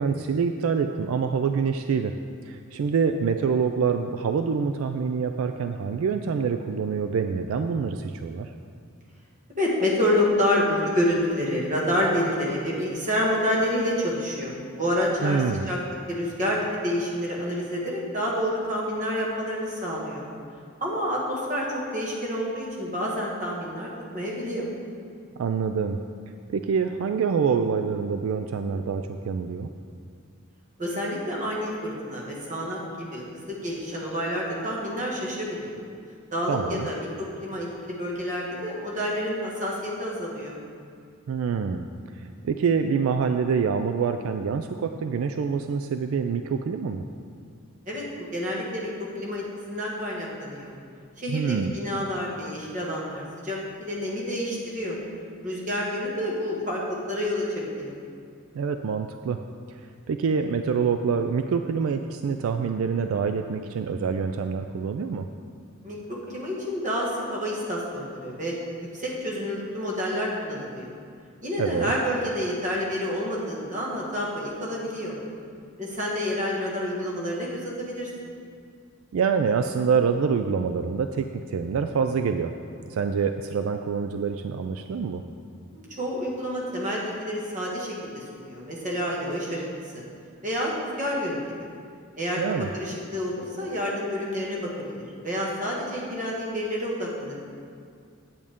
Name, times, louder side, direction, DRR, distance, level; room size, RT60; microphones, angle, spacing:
voice 1, 0.0-2.1 2.5-8.5 15.2-15.7 25.4-26.0 26.5-29.7 36.5-36.9 41.3-41.9 42.4-47.0 51.3-51.8 58.5-59.4 60.1-65.2 71.6-71.9 79.1-82.5 82.9-85.2 92.4-92.7, right 6 dB, 80° right, 7 dB, 0.3 m, -26 dB
voice 2, 9.6-15.8 16.1-20.2 20.8-24.7 30.8-32.8 33.1-35.8 36.3-40.6 47.9-48.0 48.3-50.7 51.2-55.0 55.4-58.0 65.8-66.0 66.3-68.5 68.9-70.9 71.4-75.2 75.8-78.3 85.7-89.6 89.9-90.0 90.4-91.4 92.2-92.4 92.7-94.7 95.2-97.4, equal, 40° right, -4 dB, 1.7 m, -28 dB
8.7 x 8.4 x 3.6 m, 2.2 s
head